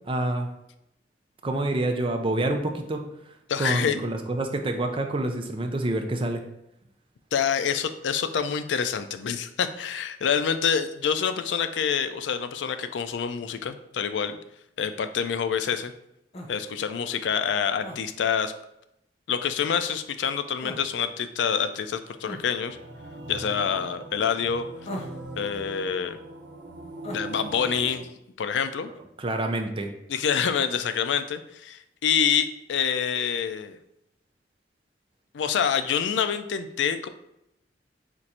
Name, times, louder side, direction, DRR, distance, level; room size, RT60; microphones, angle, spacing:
voice 1, 0.1-0.5 1.4-6.4 29.2-29.9, right 2 dB, 30° right, 5 dB, 0.5 m, -27 dB
voice 2, 3.5-4.0 7.3-14.4 14.8-15.9 16.5-18.5 19.3-22.8 23.3-24.7 25.4-26.2 27.1-28.1 28.4-28.9 30.1-33.8 35.3-37.1, left 7 dB, 90° left, 10 dB, 0.4 m, -26 dB
sound 1, 16.3-16.6 17.8-18.0 20.6-20.9 22.2-22.4 24.9-25.2 27.0-27.3, left 1 dB, 35° left, 0.7 m, -36 dB
sound 2, 22.7-28.0, right 2 dB, 90° right, 0.7 m, -40 dB
4.4 x 2.5 x 4.2 m, 0.82 s
head